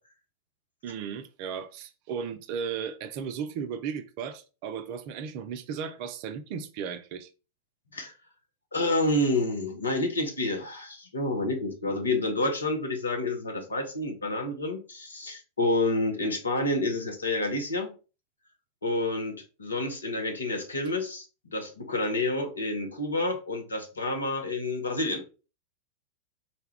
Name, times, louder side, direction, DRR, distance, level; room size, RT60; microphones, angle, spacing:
voice 1, 0.8-7.3, right 7 dB, 45° right, 0.5 m, -35 dB
voice 2, 8.7-17.9 18.8-25.2, left 2 dB, 75° left, 0.8 m, -29 dB
4.1 x 2.3 x 3.3 m
figure-of-eight pair, 90°, 0 cm